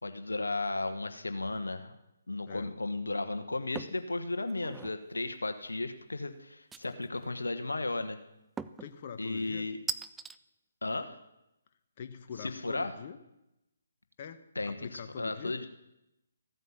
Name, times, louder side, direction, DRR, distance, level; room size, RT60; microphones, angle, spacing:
voice 1, 0.0-1.9 2.3-8.2 9.2-9.8 10.8-11.2 12.4-12.9 14.5-15.7, left 2 dB, 85° left, 9 dB, 1.2 m, -34 dB
sound 1, 3.8-4.0 4.5-5.0 6.7-7.2 8.6-8.9 9.9-10.4, right 5 dB, 10° right, 0.4 m, -39 dB
voice 2, 8.8-9.7 12.0-13.2 14.2-15.6, left 7 dB, 40° left, 8 dB, 1.1 m, -44 dB
15.0 x 9.3 x 7.3 m, 0.89 s
figure-of-eight pair, 140°, 0 cm